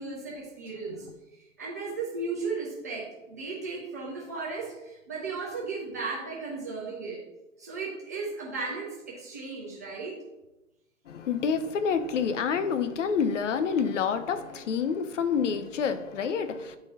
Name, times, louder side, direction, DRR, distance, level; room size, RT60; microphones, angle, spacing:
voice 1, 0.0-1.1 1.3-7.2 7.6-10.2, right 4 dB, 15° right, -5 dB, 0.3 m, -35 dB
voice 2, 11.1-16.8, left 6 dB, 60° left, 11 dB, 0.6 m, -28 dB
9.5 x 3.8 x 2.8 m, 1.0 s
hypercardioid pair, 125°, 41 cm